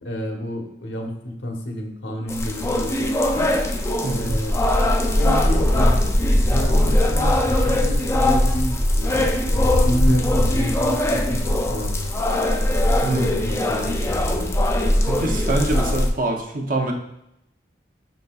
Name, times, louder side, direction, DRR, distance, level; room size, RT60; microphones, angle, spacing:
voice 1, 0.0-3.5 4.1-4.5 5.1-6.0 6.5-12.1 12.9-14.1, left 1 dB, 90° left, 1 dB, 0.9 m, -29 dB
sound 1, 2.3-16.1, left 1 dB, 15° left, 0.4 m, -20 dB
voice 2, 13.0-13.3 15.1-16.9, right 2 dB, 50° right, 2 dB, 0.6 m, -25 dB
5.5 x 3.8 x 2.3 m, 0.82 s
head